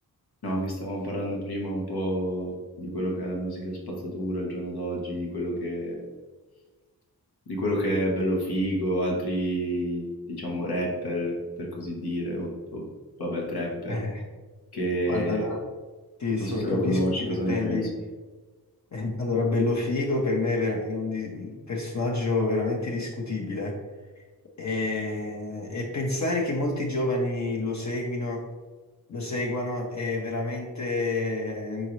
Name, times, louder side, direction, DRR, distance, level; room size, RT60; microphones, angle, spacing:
voice 1, 0.4-2.5 2.8-6.0 7.5-12.8 13.2-14.0 14.7-15.5 16.4-17.9, equal, 90° left, -2 dB, 1.1 m, -29 dB
voice 2, 13.9-14.2 15.1-15.6 16.2-17.9 18.9-23.8 24.6-28.5 29.1-31.9, left 2 dB, 50° left, -1 dB, 0.7 m, -28 dB
3.8 x 3.8 x 3.0 m, 1.3 s
wide cardioid pair, 65°, 37 cm